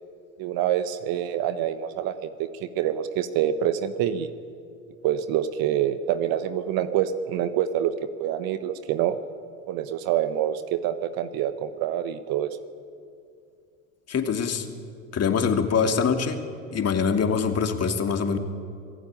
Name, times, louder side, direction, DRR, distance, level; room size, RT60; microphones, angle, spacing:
voice 1, 0.4-4.3 5.0-7.9 8.2-9.2 9.7-12.5, right 10 dB, 60° right, 11 dB, 1.3 m, -26 dB
voice 2, 14.1-14.7 15.1-16.4 16.7-18.4, left 6 dB, 35° left, 5 dB, 2.7 m, -24 dB
26.0 x 16.5 x 8.9 m, 2.4 s
hypercardioid pair, 70°, 41 cm